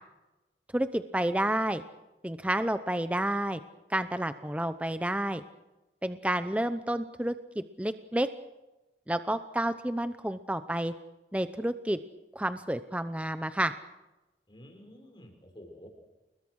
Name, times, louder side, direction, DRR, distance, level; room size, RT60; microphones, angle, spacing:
voice 1, 0.7-1.8 2.2-3.6 3.9-5.4 6.0-8.3 9.1-10.9 11.3-12.0 12.3-13.7, right 1 dB, 10° right, 10 dB, 0.7 m, -30 dB
voice 2, 14.5-15.9, equal, 25° left, 2 dB, 6.2 m, -50 dB
29.5 x 21.0 x 6.4 m, 1.0 s
head